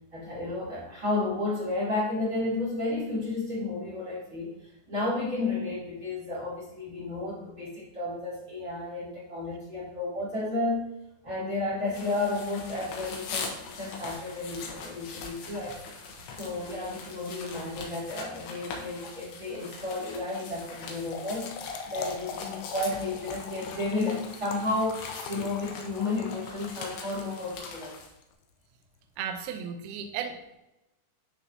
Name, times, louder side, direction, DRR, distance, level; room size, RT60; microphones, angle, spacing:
voice 1, 0.1-10.9 11.2-15.8 16.4-21.5 21.8-28.0, left 2 dB, 25° right, -8 dB, 2.0 m, -32 dB
sound 1, 11.9-28.1, left 4 dB, 70° left, 2.9 m, -42 dB
Trickle dribble / Fill (with liquid), 20.8-28.3, left 5 dB, 85° left, 3.1 m, -42 dB
voice 2, 29.2-30.6, right 7 dB, 85° right, 5 dB, 2.2 m, -35 dB
12.5 x 4.2 x 2.8 m, 0.91 s
omnidirectional pair, 5.6 m